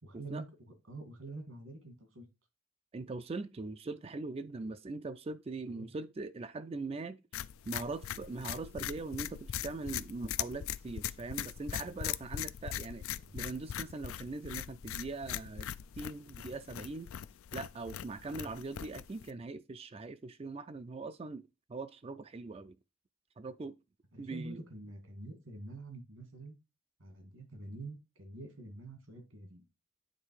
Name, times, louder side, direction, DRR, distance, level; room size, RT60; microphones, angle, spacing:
voice 1, 0.0-2.3 5.7-5.9 12.7-12.8 13.2-13.4 18.3-18.5 24.1-26.6 27.0-29.6, right 2 dB, 85° right, 2.2 m, -47 dB
voice 2, 2.9-7.2 7.7-13.0 13.3-15.7 16.0-17.1 17.5-21.4 21.7-22.8 23.4-23.8 24.2-24.6, right 3 dB, 30° right, 0.3 m, -41 dB
sound 1, 7.3-19.3, left 10 dB, 80° left, 0.4 m, -40 dB
8.9 x 3.3 x 4.7 m
head